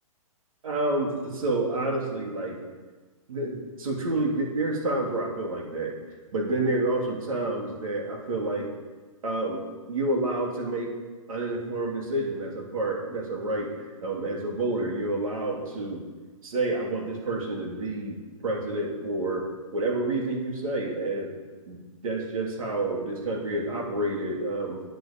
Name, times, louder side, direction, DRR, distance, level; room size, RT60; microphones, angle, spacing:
voice 1, 0.6-2.6 3.3-5.9 6.3-8.7 9.2-9.6 9.9-10.9 11.3-13.7 14.0-16.0 16.4-18.2 18.4-21.3 21.7-24.8, right 2 dB, 75° right, 0 dB, 3.0 m, -29 dB
10.5 x 8.0 x 5.3 m, 1.3 s
hypercardioid pair, 155°, 18 cm